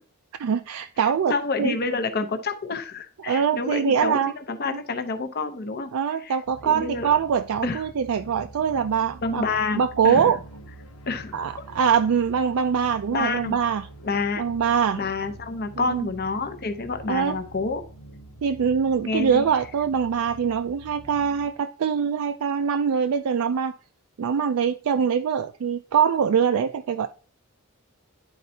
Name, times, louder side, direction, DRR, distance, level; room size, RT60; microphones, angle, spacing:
voice 1, 0.4-1.3 1.6-1.8 3.3-4.3 4.7-4.8 5.9-9.4 9.7-10.4 11.3-13.9 14.4-15.0 15.8-16.1 17.1-17.4 18.4-23.7 24.2-27.1, right 7 dB, 70° right, 7 dB, 0.4 m, -23 dB
voice 2, 1.0-5.9 6.2-6.4 6.6-7.1 7.6-7.8 9.2-10.3 11.1-11.4 13.1-13.6 14.0-14.5 15.0-17.8 19.1-19.4, left 4 dB, 45° left, 7 dB, 0.7 m, -28 dB
sound 1, 6.5-21.5, right 1 dB, 85° left, 1.0 m, -45 dB
10.5 x 4.2 x 2.7 m, 0.39 s
head